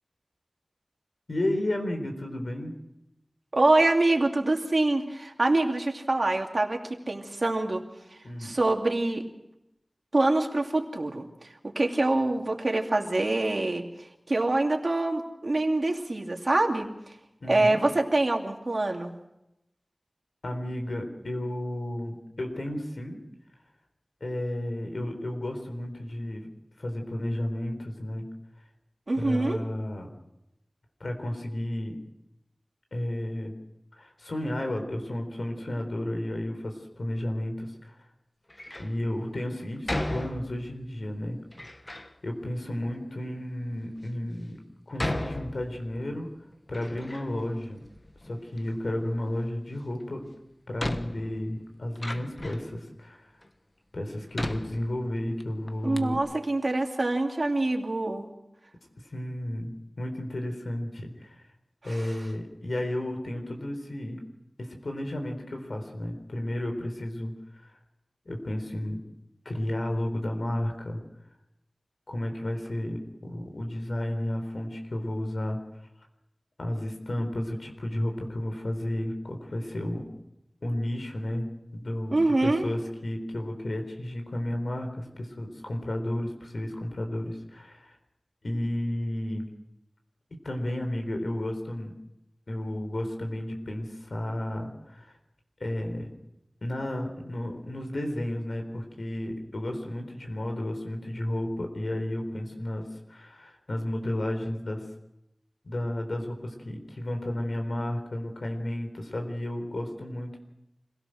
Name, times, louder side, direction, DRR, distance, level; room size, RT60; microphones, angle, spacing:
voice 1, 1.3-2.7 8.2-8.6 17.4-17.8 20.4-23.2 24.2-26.5 26.8-28.3 29.1-30.1 31.0-32.0 32.9-33.5 34.0-37.9 38.8-41.4 42.2-44.6 44.9-46.3 46.7-47.8 48.2-50.2 50.7-53.3 53.9-56.2 59.1-61.4 61.8-64.2 64.6-67.3 67.6-67.7 68.3-69.0 69.4-71.0 72.1-75.6 76.6-80.0 80.6-81.5 81.7-82.1 82.4-87.9 88.4-89.5 90.4-91.9 92.5-95.2 95.6-96.1 96.6-104.8 105.6-110.4, left 1 dB, 85° left, 4 dB, 4.0 m, -32 dB
voice 2, 3.5-7.8 8.4-9.3 10.1-13.8 14.3-16.9 17.5-19.1 29.1-29.6 55.8-58.3 61.9-62.2 82.1-82.7, right 2 dB, 60° right, 2 dB, 2.7 m, -25 dB
Door, 38.5-39.0 39.9-40.8 41.5-42.1 42.9-43.0 43.7-43.8 45.0-46.1 46.5-47.5 47.8-48.7 50.0-50.1 50.8-52.7 53.4-53.5 54.3-55.4 55.7-55.8 55.9-56.2, left 1 dB, 35° left, 1.3 m, -35 dB
26.0 x 17.0 x 6.4 m, 0.87 s
wide cardioid pair, 65°, 0 cm